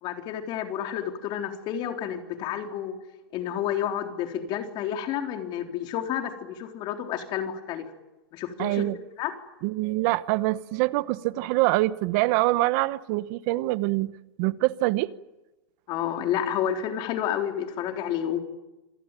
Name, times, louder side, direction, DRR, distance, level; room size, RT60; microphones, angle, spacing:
voice 1, 0.0-3.0 3.3-7.9 8.3-8.9 9.2-9.3 15.9-18.4, left 10 dB, 35° left, 5 dB, 3.8 m, -30 dB
voice 2, 8.6-9.0 9.6-14.1 14.4-15.1, right 19 dB, 45° right, 16 dB, 1.0 m, -25 dB
27.5 x 19.0 x 9.2 m, 1.0 s
supercardioid pair, 145°, 13 cm